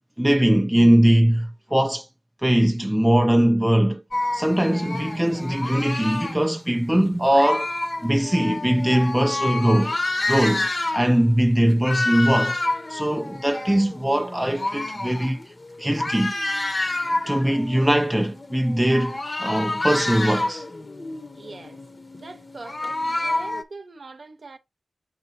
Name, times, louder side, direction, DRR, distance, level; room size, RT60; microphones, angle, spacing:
voice 1, 0.2-2.1 2.4-4.0 4.3-7.7 8.0-9.9 10.3-12.6 12.9-15.4 15.8-16.3 17.3-20.6, right 1 dB, 5° right, 0.5 m, -21 dB
sound 1, 4.1-6.5 7.3-11.2 11.6-23.6, left 2 dB, 30° left, 0.8 m, -29 dB
voice 2, 21.3-21.8 22.2-24.6, right 3 dB, 50° right, 0.9 m, -42 dB
6.8 x 5.4 x 2.7 m
wide cardioid pair, 125°, 0 cm